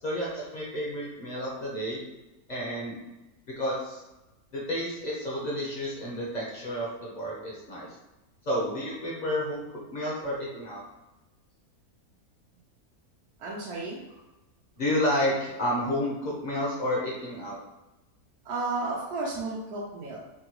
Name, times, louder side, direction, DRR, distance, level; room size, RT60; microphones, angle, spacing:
voice 1, 0.0-2.0 2.5-3.0 3.6-4.0 4.5-7.9 8.5-10.8 14.8-17.6, equal, 45° left, -5 dB, 0.6 m, -30 dB
voice 2, 13.4-14.2 18.4-20.2, right 3 dB, 85° right, -5 dB, 1.2 m, -33 dB
3.6 x 2.3 x 2.9 m, 1.0 s
omnidirectional pair, 1.6 m